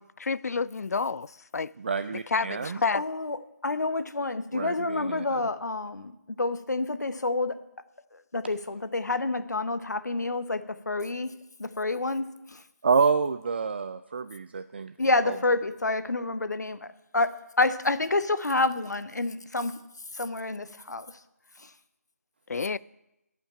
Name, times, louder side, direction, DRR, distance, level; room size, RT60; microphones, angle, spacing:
voice 1, 0.0-1.7 2.1-3.0 22.5-22.8, left 4 dB, 65° left, 0.4 m, -29 dB
voice 2, 1.8-2.8 4.5-5.4 12.8-14.9 15.3-15.4, right 5 dB, 40° right, 0.3 m, -28 dB
voice 3, 2.6-7.6 8.1-12.6 15.0-19.8 20.1-21.2 21.6-21.7, left 2 dB, 85° left, 0.8 m, -29 dB
10.5 x 5.8 x 8.6 m
figure-of-eight pair, 165°, 9 cm